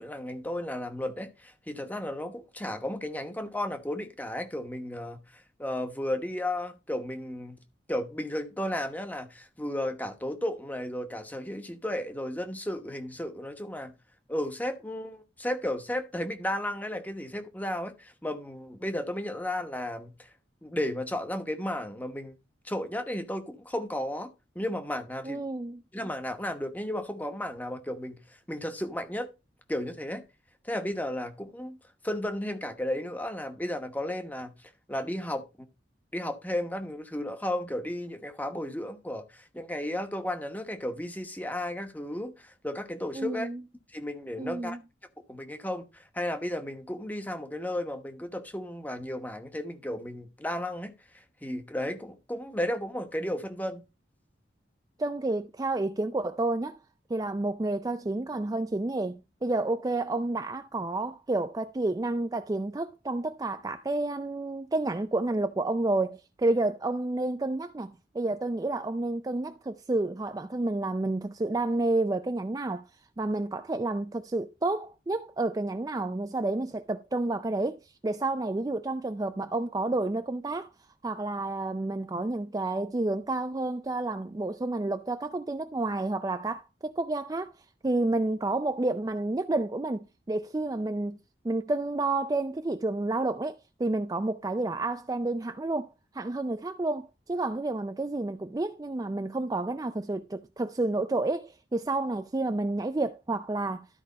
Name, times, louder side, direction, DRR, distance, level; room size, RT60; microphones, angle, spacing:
voice 1, 0.0-7.6 7.9-13.9 14.3-20.3 20.6-22.3 22.6-25.4 25.9-29.3 29.7-30.2 30.6-31.8 32.0-34.5 34.9-35.4 36.1-43.5 43.9-44.8 45.3-53.8, left 1 dB, 10° left, 1.0 m, -34 dB
voice 2, 25.2-25.8 43.1-43.6 44.4-44.8 55.0-56.8 57.1-72.9 73.2-80.7 81.0-87.5 87.8-91.2 91.4-95.9 96.1-103.9, right 2 dB, 20° right, 0.4 m, -30 dB
12.5 x 4.8 x 4.0 m
head